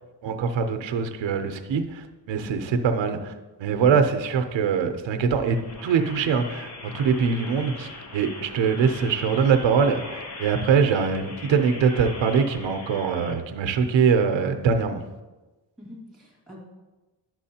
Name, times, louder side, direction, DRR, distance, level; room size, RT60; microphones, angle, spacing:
voice 1, 0.2-3.3 3.6-15.0, right 6 dB, 85° right, 6 dB, 0.7 m, -23 dB
sound 1, 5.3-13.3, left 3 dB, 40° left, 0.7 m, -40 dB
voice 2, 15.8-16.6, left 1 dB, ahead, -5 dB, 2.1 m, -43 dB
10.5 x 6.1 x 2.8 m, 1.2 s
wide cardioid pair, 160°, 44 cm